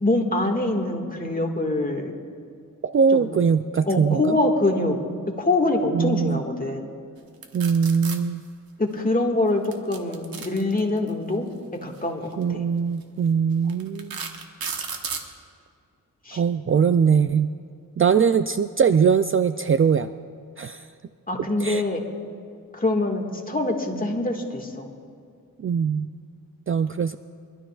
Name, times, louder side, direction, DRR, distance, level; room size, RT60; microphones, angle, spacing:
voice 1, 0.0-2.1 3.1-3.3 3.9-5.0 5.4-6.9 8.8-11.5 11.8-12.6 16.3-16.4 21.3-22.1 22.7-24.9, left 2 dB, 25° left, 2 dB, 1.9 m, -24 dB
voice 2, 2.8-4.4 5.9-6.4 7.5-8.4 12.4-14.2 16.3-17.5 18.0-20.1 20.6-20.8 21.6-21.8 25.6-26.1 26.7-27.2, right 6 dB, 40° right, 11 dB, 0.4 m, -21 dB
sound 1, 7.4-8.2 9.6-11.1 12.2-12.4 13.0-13.1 13.7-15.3, right 6 dB, 85° right, 1.1 m, -33 dB
24.0 x 12.5 x 2.4 m, 2.3 s
cardioid pair, 60°, 34 cm